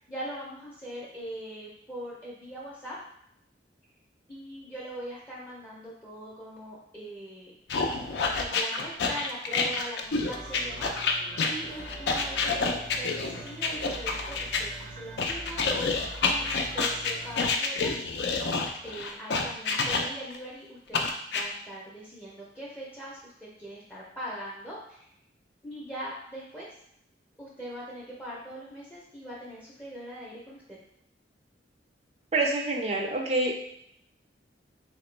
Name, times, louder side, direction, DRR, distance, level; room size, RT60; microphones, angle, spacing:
voice 1, 0.0-3.0 4.3-7.5 8.4-11.2 11.5-15.6 16.2-18.0 18.8-21.0 21.3-25.1 25.6-26.7 27.4-30.8, equal, 10° left, -5 dB, 0.6 m, -41 dB
sound 1, 7.7-14.6 15.2-20.4 20.9-21.4, left 4 dB, 65° left, 0.4 m, -28 dB
sound 2, 10.3-17.4, right 2 dB, 65° right, 0.7 m, -43 dB
voice 2, 32.3-33.5, right 2 dB, 35° right, 1 dB, 0.4 m, -26 dB
3.8 x 2.9 x 3.2 m, 0.75 s
head